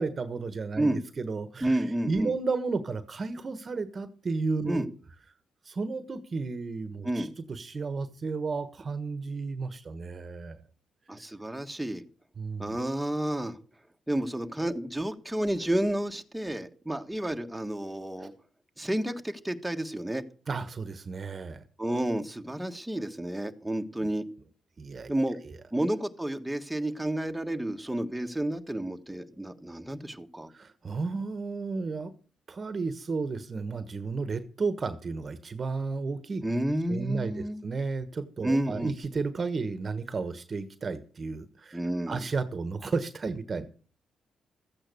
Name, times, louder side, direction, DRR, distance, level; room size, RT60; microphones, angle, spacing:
voice 1, 0.0-4.9 5.6-10.6 12.4-12.8 18.2-18.3 20.5-21.6 24.8-25.1 25.4-25.6 30.5-32.1 32.5-36.4 36.9-41.8 42.1-43.7, right 4 dB, 45° right, 12 dB, 1.3 m, -33 dB
voice 2, 1.6-2.3 4.7-4.9 7.0-7.3 11.1-12.0 12.6-13.6 14.1-18.3 18.8-20.2 21.8-24.2 25.1-25.4 25.7-30.5 36.4-37.6 38.4-38.9 41.7-42.3, right 1 dB, 5° right, 4 dB, 1.6 m, -30 dB
14.0 x 8.7 x 6.9 m, 0.41 s
cardioid pair, 65°, 0 cm